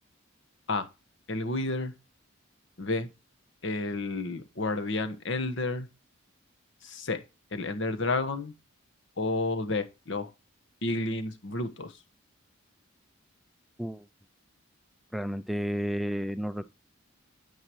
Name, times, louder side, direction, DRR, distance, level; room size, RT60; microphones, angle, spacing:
voice 1, 1.3-1.9 2.8-3.1 3.6-5.9 6.8-7.2 7.5-8.5 9.2-10.3 10.8-11.9, left 2 dB, 60° left, 1.3 m, -30 dB
voice 2, 15.1-16.7, equal, ahead, 0.4 m, -31 dB
9.7 x 8.7 x 3.0 m
head